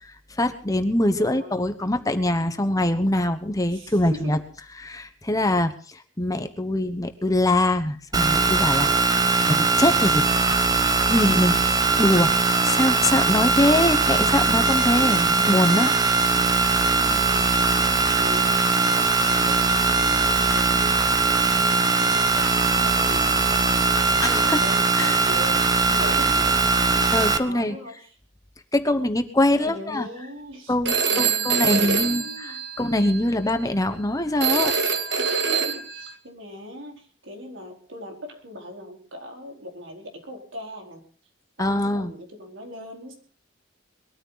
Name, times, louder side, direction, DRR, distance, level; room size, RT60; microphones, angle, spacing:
voice 1, 0.3-4.4 4.8-8.9 9.4-10.3 11.1-11.6 12.0-15.9 24.2-24.4 25.0-25.3 27.1-27.8 28.7-30.1 30.7-34.7 41.6-42.1, left 1 dB, 20° left, 8 dB, 1.1 m, -23 dB
voice 2, 1.2-1.6 3.7-4.4 8.8-9.4 17.0-25.6 25.9-26.7 27.4-27.9 29.5-32.6 35.2-41.0 41.6-43.2, left 1 dB, 80° right, 2 dB, 4.5 m, -40 dB
sound 1, 8.1-27.4, right 4 dB, 20° right, 1.0 m, -20 dB
Telephone, 30.8-33.2 34.4-36.1, right 6 dB, 60° right, 1.7 m, -24 dB
21.5 x 13.5 x 4.1 m, 0.40 s
head